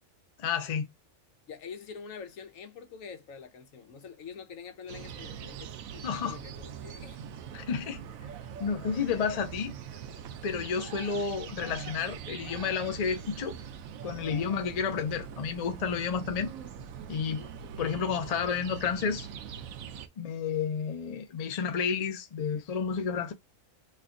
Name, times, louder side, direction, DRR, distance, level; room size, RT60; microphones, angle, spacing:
voice 1, 0.4-0.9 6.0-6.4 7.5-8.0 8.6-9.7 10.4-13.6 14.0-16.5 17.1-17.4 17.8-19.3 20.2-23.3, left 6 dB, 55° left, 0.4 m, -31 dB
voice 2, 1.5-7.2 14.3-14.5 17.3-17.5, left 6 dB, 75° left, 1.2 m, -46 dB
sound 1, 4.9-20.1, right 8 dB, 85° right, 1.0 m, -42 dB
3.2 x 2.3 x 3.7 m
omnidirectional pair, 1.4 m